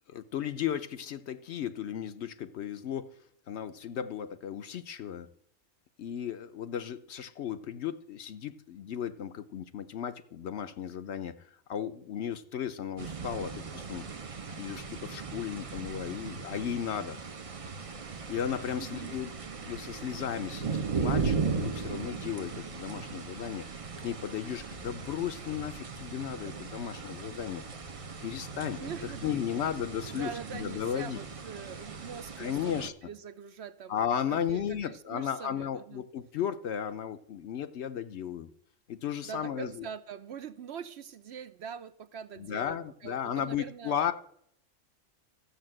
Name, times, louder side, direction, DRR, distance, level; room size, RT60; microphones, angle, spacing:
voice 1, 0.1-3.1 3.5-5.3 6.0-14.1 14.6-17.2 18.3-19.3 19.6-23.7 24.0-27.6 28.2-29.0 29.2-31.2 32.4-32.9 33.9-38.5 38.9-39.9 42.4-44.1, left 9 dB, 65° left, 0.9 m, -35 dB
sound 1, 13.0-32.9, right 5 dB, 35° right, 0.6 m, -37 dB
voice 2, 18.8-19.2 28.8-29.7 30.1-32.8 33.1-34.0 34.3-36.0 39.2-44.0, right 7 dB, 60° right, 0.8 m, -43 dB
13.0 x 6.6 x 7.6 m
omnidirectional pair, 1.4 m